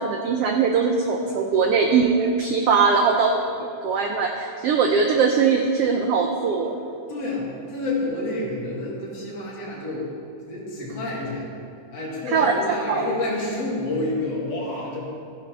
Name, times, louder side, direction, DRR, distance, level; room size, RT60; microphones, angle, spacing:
voice 1, 0.0-3.4 3.8-6.7 12.3-12.5 12.9-13.1, right 5 dB, 80° right, 3 dB, 1.3 m, -21 dB
voice 2, 7.1-10.1 10.5-11.5 11.9-15.0, left 2 dB, 55° left, -6 dB, 3.5 m, -29 dB
14.5 x 10.5 x 3.4 m, 2.5 s
omnidirectional pair, 3.4 m